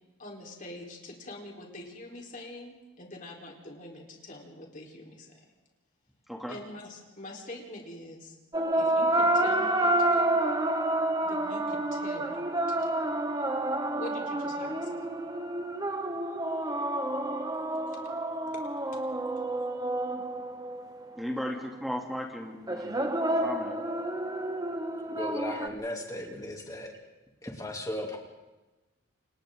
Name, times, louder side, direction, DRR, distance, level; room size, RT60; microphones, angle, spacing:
voice 1, 0.2-5.4 6.5-8.4 8.7-10.4 11.2-12.9 13.9-15.1 17.6-17.7, left 1 dB, 40° left, -1 dB, 4.2 m, -45 dB
sound 1, 8.5-21.1 22.7-25.7, right 1 dB, 20° right, 1.2 m, -29 dB
voice 2, 21.2-23.0 23.4-23.7, equal, ahead, 0 dB, 2.8 m, -35 dB
voice 3, 25.1-26.9 27.4-28.2, left 1 dB, 15° left, 0 dB, 3.1 m, -36 dB
29.0 x 27.0 x 3.9 m, 1.1 s
head